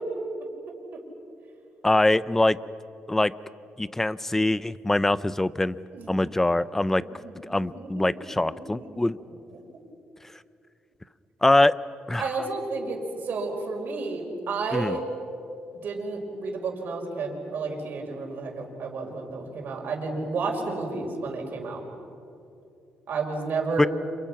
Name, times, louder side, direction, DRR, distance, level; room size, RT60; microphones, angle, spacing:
voice 1, 1.8-2.6 3.1-3.3 3.8-5.8 6.1-7.0 7.4-9.2 11.4-11.7 12.1-12.3 14.7-15.0 23.8-23.9, left 2 dB, 10° left, 17 dB, 0.5 m, -23 dB
voice 2, 5.9-6.3 7.2-8.0 8.4-8.5 8.7-8.9 12.2-15.0 15.8-21.8 23.1-23.9, right 3 dB, 55° right, 1 dB, 4.9 m, -31 dB
30.0 x 27.5 x 5.9 m, 2.7 s
cardioid pair, 135°, 4 cm